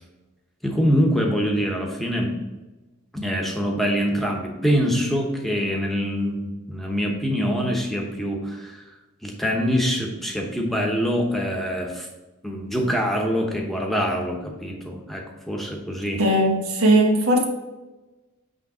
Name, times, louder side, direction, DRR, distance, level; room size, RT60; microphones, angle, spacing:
voice 1, 0.6-2.4 3.1-8.8 9.2-12.1 12.4-16.2, equal, ahead, 0 dB, 1.0 m, -24 dB
voice 2, 16.2-17.4, right 1 dB, 75° right, 2 dB, 1.3 m, -18 dB
8.4 x 3.4 x 4.9 m, 1.1 s
head